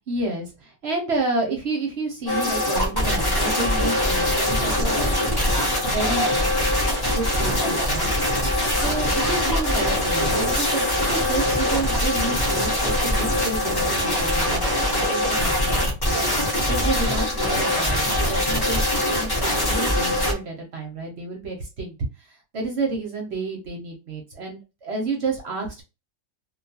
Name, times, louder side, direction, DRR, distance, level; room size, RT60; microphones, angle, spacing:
voice 1, 0.1-5.0 5.8-6.3 7.1-8.3 8.7-25.8, right 3 dB, 60° right, 1 dB, 0.8 m, -30 dB
sound 1, 2.3-20.3, left 1 dB, 25° left, 0.5 m, -22 dB
2.4 x 2.2 x 2.6 m, 0.29 s
omnidirectional pair, 1.5 m